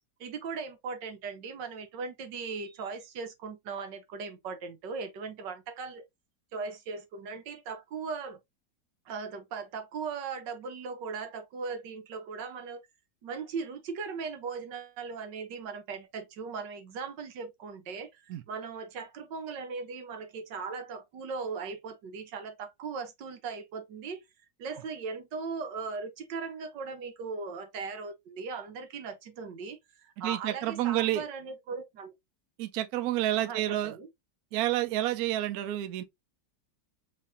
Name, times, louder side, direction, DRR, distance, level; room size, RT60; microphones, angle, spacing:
voice 1, 0.2-6.0 6.5-8.4 9.0-12.8 13.2-24.2 24.6-32.1 33.4-34.1, right 5 dB, 85° right, 1.7 m, -38 dB
voice 2, 30.2-31.2 32.6-34.0 34.5-36.0, right 14 dB, 70° right, 1.0 m, -29 dB
4.7 x 3.4 x 2.7 m
omnidirectional pair, 1.8 m